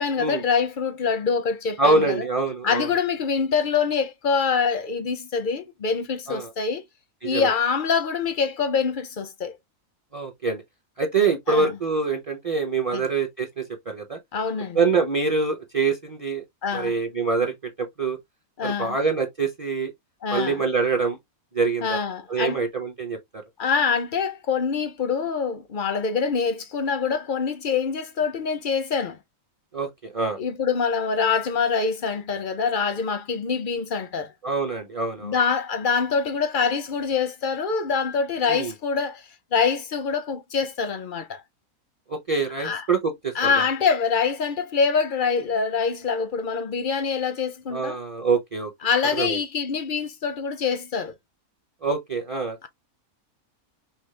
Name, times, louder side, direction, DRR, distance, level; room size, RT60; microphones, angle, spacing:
voice 1, 0.0-2.3 2.6-6.8 7.2-9.6 11.5-11.7 12.9-13.0 14.3-14.8 16.6-16.9 18.6-19.0 20.2-20.6 21.8-22.6 23.6-29.2 30.4-34.3 35.2-41.4 42.6-42.8 43.3-48.0 48.8-51.1, left 5 dB, 55° left, 0.6 m, -25 dB
voice 2, 1.8-2.9 6.3-6.5 7.2-7.5 10.1-10.6 11.0-14.2 14.7-16.4 16.7-18.2 18.6-19.9 20.3-21.2 21.5-22.0 22.3-23.4 29.7-30.4 34.4-35.4 38.5-38.7 42.1-43.7 47.7-48.7 49.1-49.4 51.8-52.7, right 4 dB, 30° right, 0.7 m, -25 dB
5.7 x 2.0 x 3.3 m
omnidirectional pair, 1.5 m